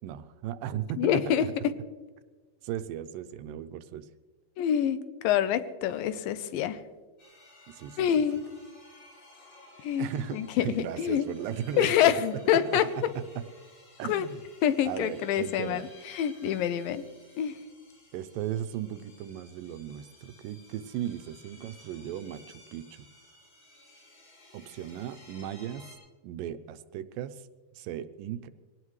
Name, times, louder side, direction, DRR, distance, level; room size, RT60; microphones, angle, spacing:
voice 1, 0.0-1.5 2.6-4.1 7.7-8.1 10.0-12.1 12.5-12.8 13.4-13.5 14.0-14.4 14.9-15.9 18.1-23.1 24.5-25.9 26.2-27.5 27.8-28.5, right 10 dB, 85° right, 11 dB, 2.3 m, -36 dB
voice 2, 1.0-1.7 4.6-6.8 8.0-8.4 9.8-11.3 11.8-12.9 14.1-14.3 14.6-15.9 16.1-17.0 17.4-17.6, left 10 dB, 85° left, 12 dB, 2.4 m, -26 dB
sound 1, 7.2-26.0, left 2 dB, 60° left, 7.6 m, -55 dB
22.5 x 18.0 x 3.2 m, 1.3 s
omnidirectional pair, 4.1 m